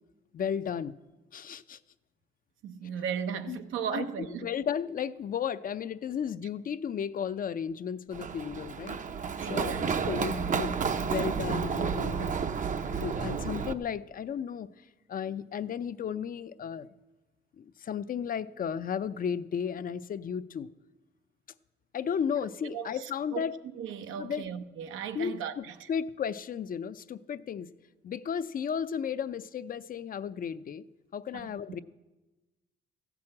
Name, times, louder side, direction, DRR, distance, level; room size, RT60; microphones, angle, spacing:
voice 1, 0.3-0.9 1.3-1.8 3.5-3.6 3.9-4.0 4.4-9.0 9.5-10.7 11.0-16.9 17.6-20.7 21.9-23.6 24.2-24.5 25.1-27.7 28.0-30.8 31.1-31.8, left 7 dB, 45° left, 0.5 m, -34 dB
voice 2, 2.6-4.5 9.4-10.4 13.2-13.3 22.7-23.5 23.8-25.9 31.3-31.5, right 7 dB, 85° right, 0.8 m, -37 dB
Run, 8.1-13.7, right 6 dB, 40° right, 0.6 m, -31 dB
14.5 x 6.1 x 8.6 m
cardioid pair, 90°, 20 cm